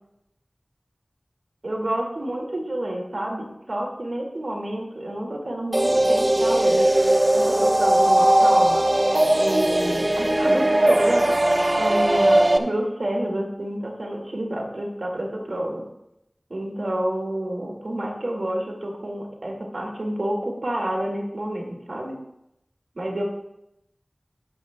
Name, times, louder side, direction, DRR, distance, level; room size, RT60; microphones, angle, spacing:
voice 1, 1.6-6.8 7.3-8.9 9.4-11.3 11.8-15.8 16.5-22.2 23.0-23.2, right 1 dB, 90° right, 0 dB, 2.0 m, -29 dB
sound 1, 5.7-12.6, right 1 dB, 50° right, 0.9 m, -19 dB
21.0 x 7.5 x 2.2 m, 0.83 s
wide cardioid pair, 45°, 0 cm